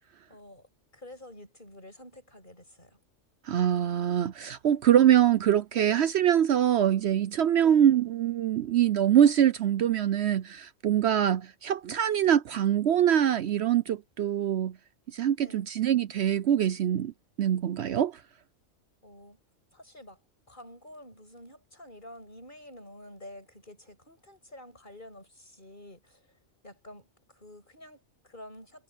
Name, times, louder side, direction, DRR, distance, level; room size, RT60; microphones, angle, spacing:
voice 1, 0.3-0.7 0.9-3.0 4.6-4.8 5.7-6.1 7.6-7.9 15.4-15.7 19.0-19.4 19.7-20.2 20.5-26.2 26.6-28.8, left 1 dB, 40° left, 8.2 m, -49 dB
voice 2, 3.5-14.7 15.1-17.1 17.4-18.2, right 10 dB, 65° right, 0.9 m, -24 dB
omnidirectional pair, 1.3 m